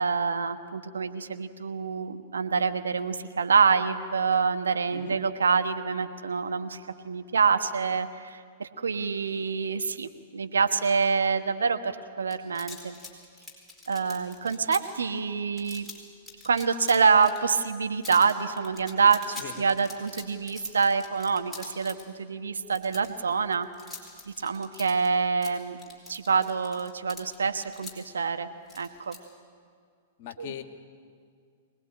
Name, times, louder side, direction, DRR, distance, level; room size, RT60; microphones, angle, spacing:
voice 1, 0.0-13.0 13.9-15.8 16.4-23.7 24.3-25.8 26.1-28.5 28.7-29.2 30.4-30.5, right 5 dB, 75° right, 8 dB, 1.3 m, -26 dB
sound 1, 12.3-14.8 15.6-16.0 16.3-17.4 17.6-17.8 18.0-22.0 22.7-25.1 25.4-27.9 28.7-29.2, left 3 dB, 5° left, 4.5 m, -44 dB
voice 2, 30.2-30.6, left 10 dB, 50° left, 7 dB, 1.9 m, -40 dB
23.5 x 19.5 x 8.9 m, 2.1 s
figure-of-eight pair, 105°, 0 cm